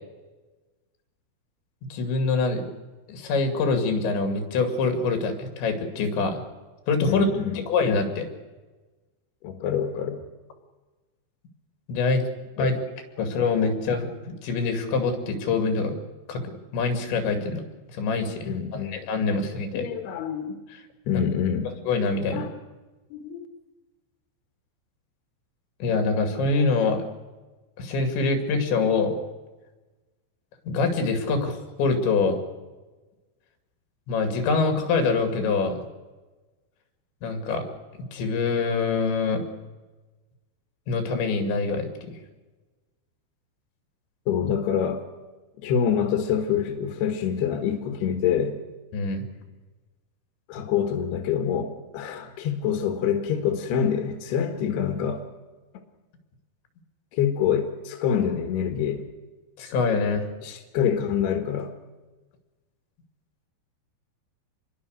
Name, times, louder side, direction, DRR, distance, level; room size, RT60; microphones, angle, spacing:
voice 1, 1.9-2.7 3.1-6.4 6.9-7.3 7.5-8.3 11.9-12.2 12.6-12.8 13.2-16.0 16.3-17.6 17.9-19.8 21.9-22.5 25.8-27.1 27.8-29.2 30.7-32.4 34.1-35.8 37.2-37.6 38.1-39.4 40.9-42.2 48.9-49.2 59.6-60.3, left 4 dB, 90° left, 6 dB, 4.9 m, -25 dB
voice 2, 7.1-7.6 9.4-10.2 12.6-12.7 18.5-19.1 19.7-20.6 21.1-21.8 22.3-22.5 23.1-23.5 44.3-45.1 45.6-48.6 50.5-55.2 57.1-59.1 60.4-61.8, left 8 dB, 75° left, 6 dB, 3.5 m, -26 dB
27.0 x 22.0 x 6.6 m, 1.2 s
omnidirectional pair, 5.0 m